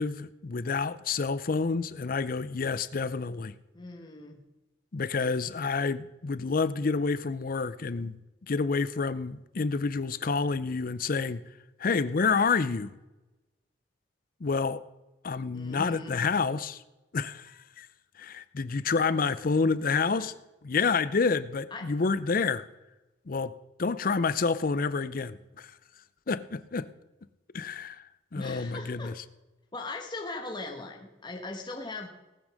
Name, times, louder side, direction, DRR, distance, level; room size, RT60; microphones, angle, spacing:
voice 1, 0.0-3.6 4.9-11.4 11.8-12.9 14.4-14.8 15.2-16.8 17.1-17.9 18.2-20.3 20.6-22.7 23.3-23.5 23.8-25.7 26.3-26.9 27.5-28.0 28.3-29.1, left 4 dB, 50° left, 16 dB, 0.5 m, -28 dB
voice 2, 3.7-4.4 15.5-16.2 19.9-20.3 21.7-21.9 28.3-29.1 29.7-32.1, left 2 dB, 25° left, 1 dB, 1.2 m, -39 dB
18.5 x 6.2 x 6.4 m, 1.0 s
head